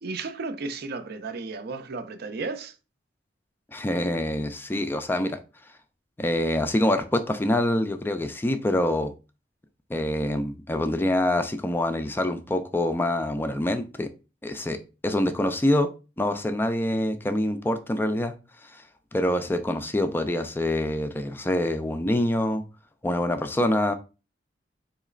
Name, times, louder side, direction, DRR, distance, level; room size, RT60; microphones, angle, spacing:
voice 1, 0.0-2.7, right 3 dB, 60° right, 0.5 m, -34 dB
voice 2, 3.7-5.4 6.2-9.1 9.9-14.1 14.4-15.9 16.2-18.3 18.6-18.8 19.1-22.6 23.0-23.9, left 1 dB, 10° left, 0.3 m, -25 dB
4.0 x 2.9 x 2.4 m
head